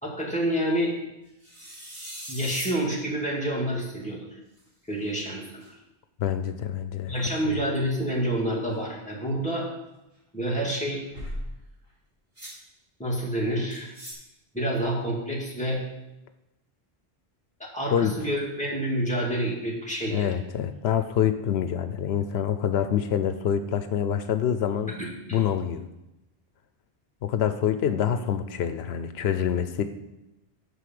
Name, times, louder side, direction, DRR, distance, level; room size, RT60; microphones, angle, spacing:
voice 1, 0.0-0.9 2.3-4.4 4.9-5.6 7.1-9.7 10.3-11.0 13.0-13.9 14.5-15.8 17.6-20.3 25.0-25.4, right 1 dB, 5° left, -4 dB, 2.5 m, -28 dB
sound 1, 1.4-2.8 4.0-4.1 4.6-4.7 5.4-5.7 10.9-11.5 12.4-12.6 13.7-14.1, equal, 50° right, 2.9 m, -38 dB
voice 2, 6.2-7.1 17.9-18.1 20.1-24.9 25.3-25.8 27.2-29.8, left 9 dB, 85° left, 10 dB, 0.9 m, -26 dB
8.3 x 5.6 x 7.6 m, 0.93 s
omnidirectional pair, 1.0 m